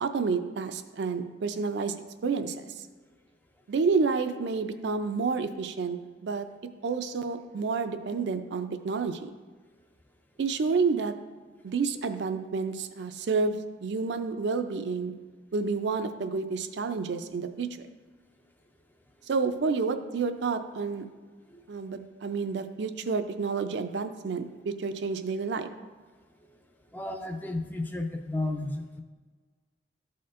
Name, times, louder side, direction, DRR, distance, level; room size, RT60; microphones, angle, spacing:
voice 1, 0.0-2.8 3.7-6.5 6.8-9.3 10.4-11.1 11.6-15.1 15.5-17.7 19.3-21.0 21.7-25.7, right 4 dB, 60° right, 8 dB, 0.4 m, -29 dB
voice 2, 26.9-29.0, left 2 dB, 10° left, 4 dB, 0.4 m, -33 dB
12.5 x 4.2 x 2.5 m, 1.4 s
head